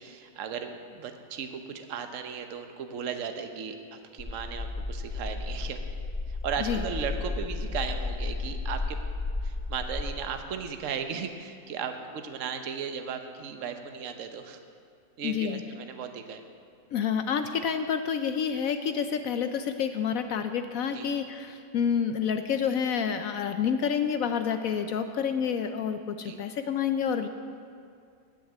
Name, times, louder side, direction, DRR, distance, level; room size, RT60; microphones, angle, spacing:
voice 1, 0.0-5.8 6.3-9.0 9.4-14.6 15.2-16.4 20.9-21.1 26.2-26.4, right 6 dB, 55° right, 7 dB, 1.2 m, -36 dB
sound 1, 4.2-10.1, left 3 dB, 25° left, 0.6 m, -33 dB
voice 2, 15.2-15.6 16.9-27.3, left 7 dB, 70° left, 9 dB, 0.9 m, -28 dB
14.5 x 6.6 x 9.9 m, 2.3 s
omnidirectional pair, 1.7 m